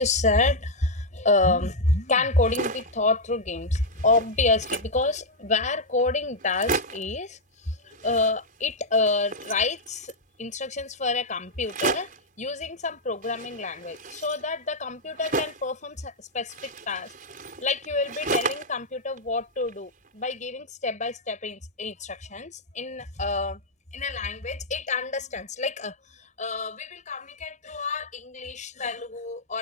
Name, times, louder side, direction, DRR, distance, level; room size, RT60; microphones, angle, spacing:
voice 1, 0.0-10.1 10.4-12.1 12.4-17.1 17.6-23.6 23.9-26.0 26.4-29.6, left 3 dB, 45° left, 6.4 m, -27 dB
sound 1, 2.2-3.0 3.5-3.6 3.8-5.0 5.7-5.8 6.0-6.1 6.4-7.2 7.9-8.7 8.9-10.2 11.6-12.3 13.2-15.7 16.5-18.8 19.2-20.1, right 4 dB, 50° right, 4.8 m, -33 dB
head